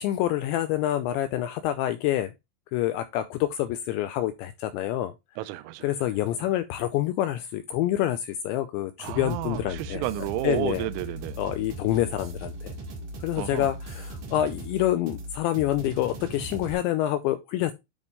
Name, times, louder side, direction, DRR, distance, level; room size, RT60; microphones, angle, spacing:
voice 1, 0.0-2.3 2.7-5.1 5.8-10.0 10.4-10.9 11.4-12.7 13.2-17.7, left 13 dB, 85° left, 2.6 m, -27 dB
voice 2, 5.4-5.9 9.0-11.4 13.4-13.7, right 16 dB, 85° right, 3.1 m, -31 dB
sound 1, 9.1-16.7, right 1 dB, 60° right, 2.4 m, -38 dB
9.6 x 3.6 x 4.0 m
omnidirectional pair, 5.7 m